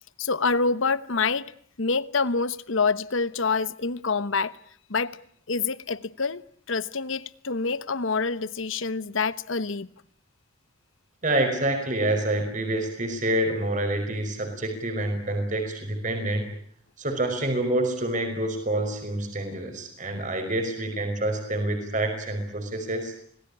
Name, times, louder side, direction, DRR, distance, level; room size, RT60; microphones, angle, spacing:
voice 1, 0.2-1.5 1.8-4.6 4.9-5.2 5.5-6.4 6.7-9.9, left 4 dB, 70° left, 1.0 m, -26 dB
voice 2, 11.2-16.5 17.0-23.1, right 1 dB, 35° right, 5.3 m, -27 dB
26.0 x 19.0 x 10.0 m
head